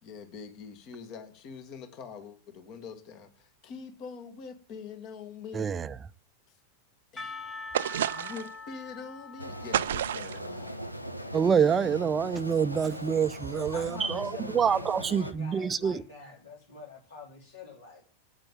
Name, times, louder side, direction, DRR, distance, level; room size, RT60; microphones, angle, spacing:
voice 1, 0.0-5.7 6.5-6.6 7.1-7.4 7.8-10.9, left 5 dB, 40° left, 1.9 m, -44 dB
voice 2, 5.5-5.9 11.3-16.0, right 7 dB, 20° right, 0.6 m, -26 dB
Percussion / Church bell, 7.2-11.9, left 3 dB, 15° left, 1.6 m, -45 dB
sound 1, 7.7-8.6 9.7-10.5, right 10 dB, 60° right, 0.5 m, -30 dB
sound 2, 9.4-15.3, equal, 90° left, 1.0 m, -39 dB
voice 3, 13.7-18.1, left 4 dB, 65° left, 3.6 m, -45 dB
8.8 x 8.7 x 9.1 m
figure-of-eight pair, 90°, 0 cm